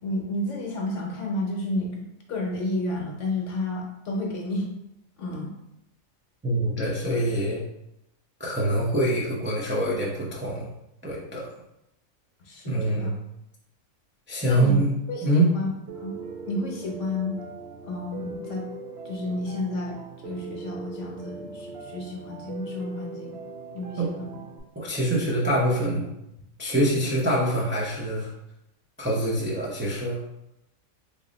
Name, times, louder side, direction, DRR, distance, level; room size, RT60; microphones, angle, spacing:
voice 1, 0.0-2.0 2.3-4.7 5.2-5.5 12.4-13.1 14.4-17.4 17.8-18.7 19.0-20.0 20.2-23.4 23.7-24.4, left 2 dB, 65° left, 0 dB, 1.1 m, -31 dB
voice 2, 6.4-7.6 8.4-10.7 11.0-11.5 12.7-13.1 14.3-14.9 15.2-15.5 24.0-24.1 24.8-26.1 26.6-28.3 29.0-30.2, right 1 dB, 15° right, -5 dB, 0.3 m, -24 dB
Piano, 15.9-24.6, right 4 dB, 60° right, 0.7 m, -40 dB
3.3 x 2.5 x 3.9 m, 0.85 s
omnidirectional pair, 1.4 m